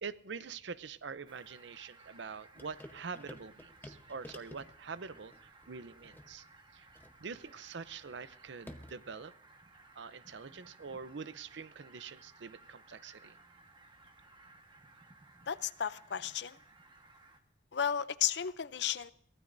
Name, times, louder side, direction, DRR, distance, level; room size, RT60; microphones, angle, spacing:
voice 1, 0.0-6.4 6.7-6.9 7.2-9.3 10.0-13.4, right 5 dB, 65° right, 16 dB, 0.6 m, -45 dB
Fowl, 1.3-17.4, right 3 dB, 25° right, 1.3 m, -60 dB
sound 1, 2.5-9.1, left 1 dB, 10° left, 0.9 m, -54 dB
voice 2, 15.5-16.6 17.7-19.1, left 9 dB, 60° left, 16 dB, 0.5 m, -33 dB
23.5 x 16.0 x 2.6 m, 0.68 s
head